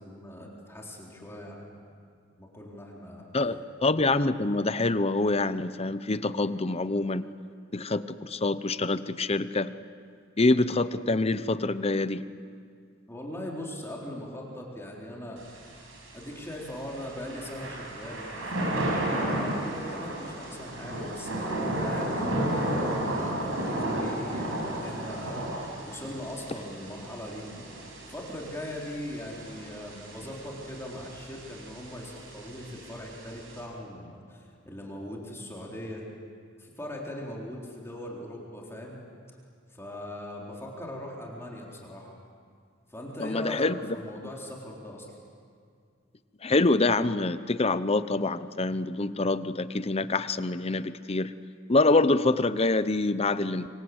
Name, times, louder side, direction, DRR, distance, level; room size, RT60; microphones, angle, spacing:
voice 1, 0.0-1.7 2.4-3.2 13.1-15.7 16.1-27.5 28.1-36.0 36.6-39.0 39.7-42.1 42.9-43.7 43.9-45.1, left 1 dB, 15° left, -3 dB, 4.1 m, -40 dB
voice 2, 3.3-7.3 7.7-9.7 10.4-12.2 43.2-44.0 46.4-51.3 51.7-53.7, left 2 dB, 30° left, 13 dB, 0.8 m, -26 dB
Thunder / Rain, 15.4-33.6, right 1 dB, 90° right, 7.4 m, -33 dB
27.0 x 25.0 x 8.1 m, 2.2 s
head